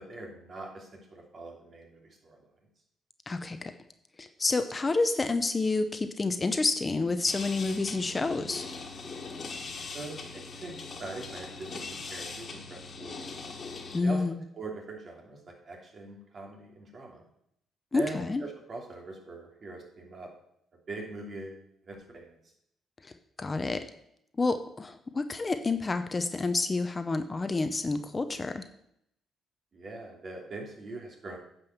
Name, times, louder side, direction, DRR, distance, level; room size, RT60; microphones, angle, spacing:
voice 1, 0.0-2.4 9.9-10.7 11.0-13.3 14.0-14.2 14.5-17.2 17.9-20.3 20.9-22.4 29.7-31.4, right 2 dB, 45° right, 0 dB, 2.9 m, -42 dB
voice 2, 3.3-3.7 4.2-8.6 13.9-14.4 17.9-18.4 23.0-23.1 23.4-23.9 24.4-28.6, left 3 dB, 25° left, 9 dB, 0.7 m, -29 dB
sound 1, 7.3-14.0, left 4 dB, 45° left, 1.7 m, -41 dB
9.4 x 5.4 x 7.1 m, 0.74 s
cardioid pair, 90°, 0 cm